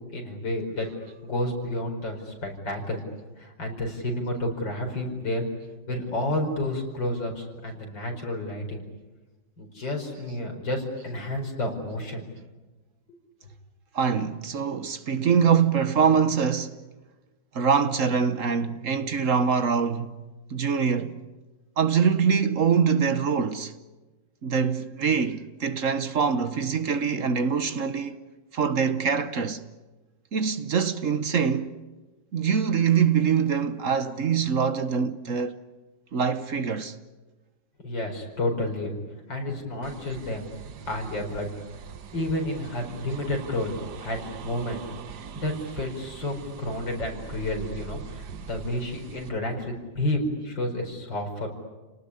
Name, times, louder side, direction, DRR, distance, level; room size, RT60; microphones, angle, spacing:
voice 1, 0.1-3.0 3.4-5.5 5.9-8.8 9.6-12.3 37.8-40.5 40.9-41.5 42.1-43.7 44.0-44.9 45.3-51.5, left 1 dB, 90° left, 5.6 m, -30 dB
voice 2, 13.9-16.8 17.5-20.1 20.5-21.2 21.8-23.7 24.4-28.2 28.5-29.6 30.3-31.7 32.3-35.6 36.1-37.0, right 6 dB, 50° right, 1.2 m, -24 dB
sound 1, 39.8-49.3, right 7 dB, 65° right, 1.6 m, -42 dB
30.0 x 19.0 x 9.9 m
omnidirectional pair, 1.9 m